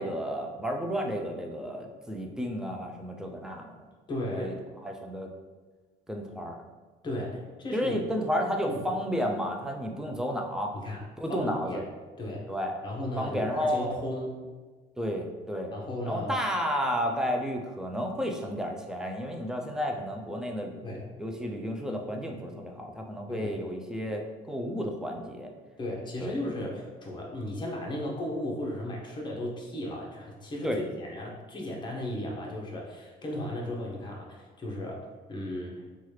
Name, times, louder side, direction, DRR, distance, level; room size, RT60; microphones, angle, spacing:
voice 1, 0.0-3.7 4.3-4.5 4.8-5.3 6.1-6.6 7.7-10.7 11.2-11.8 12.5-12.9 13.2-14.0 15.0-15.7 16.0-20.8 21.2-25.5 26.2-26.3 30.6-30.8, equal, 5° right, 2 dB, 0.4 m, -32 dB
voice 2, 4.1-4.6 7.0-7.9 8.7-8.8 10.7-11.0 11.3-11.8 12.2-12.5 12.8-14.4 15.7-16.4 20.8-21.1 23.3-23.5 25.8-35.8, left 1 dB, 25° left, -1 dB, 0.7 m, -35 dB
2.9 x 2.3 x 3.1 m, 1.4 s
cardioid pair, 110°, 17 cm